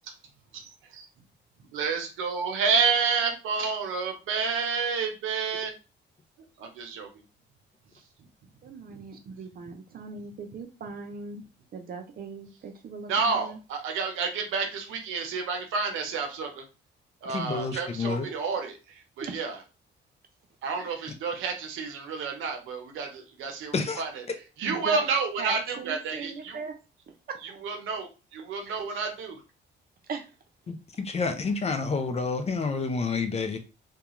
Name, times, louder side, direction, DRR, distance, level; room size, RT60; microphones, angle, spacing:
voice 1, 1.7-5.7 6.6-7.1 13.1-16.6 17.2-18.7 19.2-19.5 20.6-24.1 24.6-26.6 27.6-29.4, right 5 dB, 85° right, 0.7 m, -29 dB
voice 2, 8.6-11.4 11.7-13.6 17.2-17.4 19.2-19.3 20.8-21.1 24.6-25.0 25.4-26.7 27.3-27.4 28.6-28.8 30.1-30.3, right 4 dB, 50° right, 0.6 m, -38 dB
voice 3, 17.3-18.3 23.7-24.0 24.3-24.4 30.7-33.6, left 4 dB, 30° left, 0.5 m, -29 dB
2.3 x 2.3 x 2.9 m
cardioid pair, 90°, 20 cm